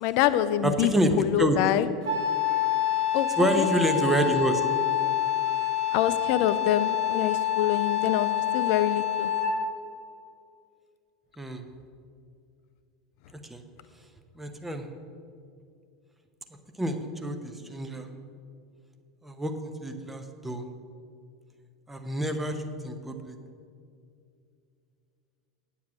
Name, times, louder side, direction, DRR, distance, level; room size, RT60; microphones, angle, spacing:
voice 1, 0.0-0.9 1.2-1.9 3.1-3.3 3.6-3.7 5.9-9.3, left 12 dB, 50° left, 13 dB, 0.5 m, -25 dB
voice 2, 0.6-1.1 1.4-1.6 3.4-4.6 11.4-11.6 13.5-13.6 14.4-14.9 16.8-17.0 17.2-18.1 19.2-20.6 21.9-23.4, right 1 dB, 10° right, 5 dB, 0.9 m, -27 dB
Wind instrument woodwind instrument, 2.0-9.7, left 10 dB, 65° right, 2.2 m, -27 dB
9.3 x 7.3 x 6.2 m, 2.4 s
figure-of-eight pair, 80°, 2 cm